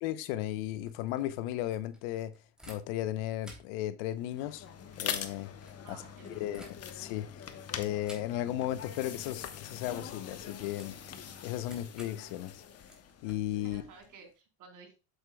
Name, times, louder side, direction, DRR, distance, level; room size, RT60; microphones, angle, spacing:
voice 1, 0.0-2.3 2.7-4.7 5.0-5.5 5.9-6.0 6.4-6.6 6.9-7.3 7.8-12.6 13.2-13.8, left 13 dB, 80° left, 0.9 m, -35 dB
sound 1, 0.7-3.1 3.4-7.2 8.0-8.7 9.0-9.2 9.5-14.1, equal, ahead, 3.1 m, -56 dB
sound 2, 4.2-14.1, left 8 dB, 40° left, 1.2 m, -43 dB
voice 2, 5.8-6.6 13.6-14.9, right 5 dB, 55° right, 3.9 m, -53 dB
7.9 x 7.8 x 2.3 m
supercardioid pair, 105°, 38 cm